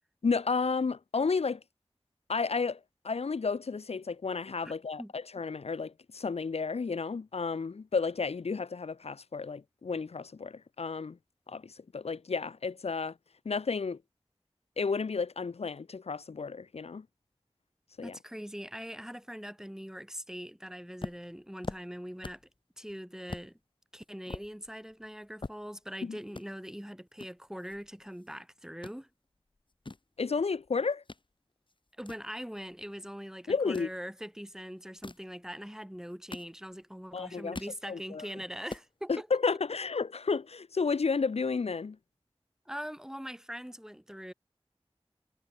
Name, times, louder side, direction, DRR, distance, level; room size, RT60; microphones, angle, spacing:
voice 1, 0.2-1.6 2.3-2.8 3.0-11.2 11.5-13.2 13.5-14.0 14.8-17.1 18.0-18.2 26.0-26.2 30.2-31.0 33.5-33.9 37.1-37.6 37.9-38.3 39.1-42.0, left 4 dB, 90° left, 0.5 m, -32 dB
voice 2, 18.0-22.4 22.8-23.6 23.9-29.1 32.0-39.3 42.6-44.3, equal, 5° right, 3.2 m, -42 dB
sound 1, 21.0-22.6 22.9-23.0 23.3-23.5 24.0-26.0 26.3-26.5 27.2-28.4 28.6-29.0 29.6-31.3 31.7-33.0 33.6-34.0 34.8-35.3 35.9-36.9 37.2-37.8 38.2-38.3 38.5-38.9, left 3 dB, 55° left, 1.1 m, -43 dB
wide cardioid pair, 55°, 10 cm